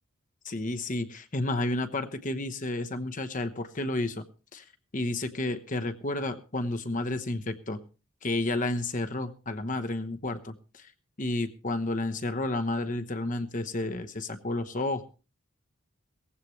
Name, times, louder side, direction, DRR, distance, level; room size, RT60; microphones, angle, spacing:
voice 1, 0.4-4.2 4.5-4.6 4.9-7.8 8.2-10.9 11.2-15.0, left 2 dB, 40° left, 8 dB, 1.0 m, -31 dB
17.5 x 15.5 x 3.2 m, 0.34 s
head